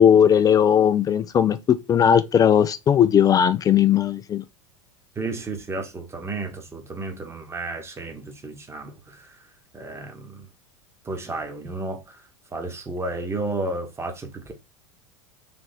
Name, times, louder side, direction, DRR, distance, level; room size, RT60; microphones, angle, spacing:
voice 1, 0.0-4.4, left 8 dB, 20° left, 0.3 m, -18 dB
voice 2, 5.1-9.4 9.7-10.5 11.0-12.2 12.5-14.5, right 2 dB, 15° right, 1.1 m, -32 dB
3.5 x 3.1 x 4.1 m
figure-of-eight pair, 85°, 17 cm